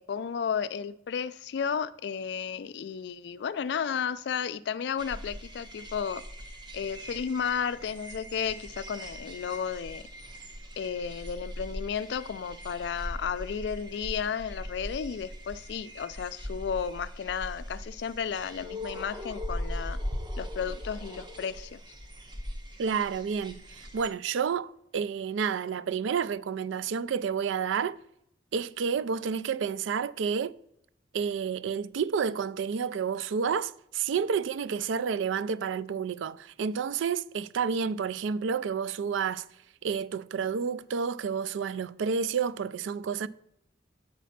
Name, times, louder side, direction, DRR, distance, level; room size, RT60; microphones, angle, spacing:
voice 1, 0.0-6.2 6.7-10.0 10.8-20.0 20.3-21.8, left 7 dB, 65° left, 0.3 m, -33 dB
sound 1, 5.0-24.1, equal, 25° right, 0.9 m, -40 dB
voice 2, 22.8-27.9 28.5-30.5 31.1-39.5 39.8-43.3, right 6 dB, 85° right, 0.3 m, -30 dB
8.2 x 4.2 x 5.7 m
head